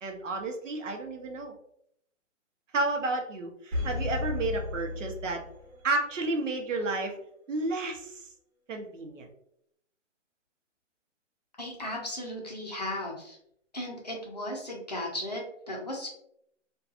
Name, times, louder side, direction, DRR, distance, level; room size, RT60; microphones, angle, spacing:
voice 1, 0.0-1.5 2.7-5.4 5.8-7.2 7.5-8.2 8.7-9.3, right 2 dB, 90° right, 3 dB, 0.8 m, -31 dB
sound 1, 3.7-5.9 6.2-6.3, left 3 dB, 60° right, 1.0 m, -34 dB
voice 2, 11.6-13.4 13.7-16.1, left 1 dB, 35° left, -1 dB, 0.4 m, -36 dB
2.6 x 2.2 x 2.4 m, 0.71 s
hypercardioid pair, 175°, 37 cm